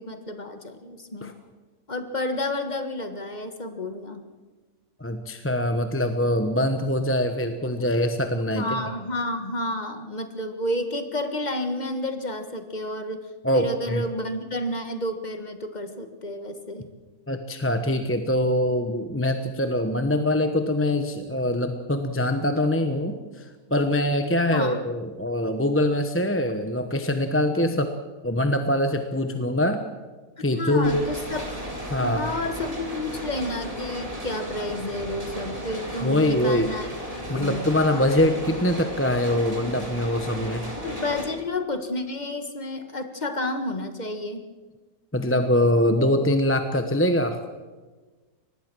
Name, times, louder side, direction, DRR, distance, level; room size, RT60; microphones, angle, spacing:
voice 1, 0.0-1.4 1.9-4.2 8.5-13.2 13.5-16.9 24.5-24.8 30.4-31.6 32.0-36.9 37.3-37.6 37.9-38.1 40.7-44.4, left 1 dB, 30° left, 7 dB, 1.7 m, -30 dB
voice 2, 5.0-8.8 13.4-14.0 17.3-27.9 28.2-29.8 30.4-31.1 31.9-32.3 36.0-36.7 37.3-40.7 45.1-47.4, left 1 dB, 10° left, 7 dB, 1.0 m, -23 dB
sound 1, 30.8-41.2, equal, 20° right, 4.5 m, -35 dB
24.0 x 19.5 x 6.3 m, 1.3 s
omnidirectional pair, 1.6 m